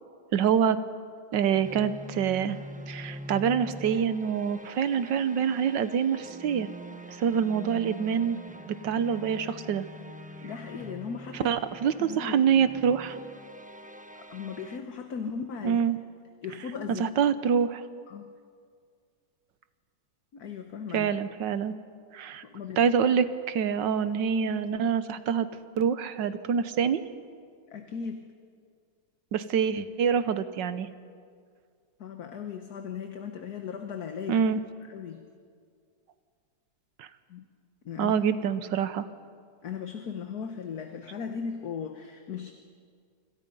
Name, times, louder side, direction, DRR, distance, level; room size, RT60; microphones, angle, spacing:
voice 1, 0.3-0.8 1.3-2.6 2.9-6.7 7.2-8.4 8.7-9.9 11.4-13.2 15.6-16.0 17.0-17.8 20.9-21.7 22.1-22.4 22.8-25.5 25.8-27.0 29.3-30.9 34.3-34.6 37.0-37.1 38.0-39.1, right 7 dB, 80° right, 13 dB, 1.6 m, -26 dB
sound 1, 1.5-14.8, equal, 5° right, 0.7 m, -44 dB
voice 2, 10.4-11.5 12.0-12.4 14.3-15.8 16.4-17.1 18.1-18.3 20.3-21.1 22.4-22.9 27.7-28.3 32.0-34.4 34.9-35.3 37.3-37.4 37.8-38.1 39.6-42.5, left 6 dB, 60° left, 6 dB, 1.6 m, -37 dB
29.0 x 26.0 x 5.5 m, 2.1 s
omnidirectional pair, 1.9 m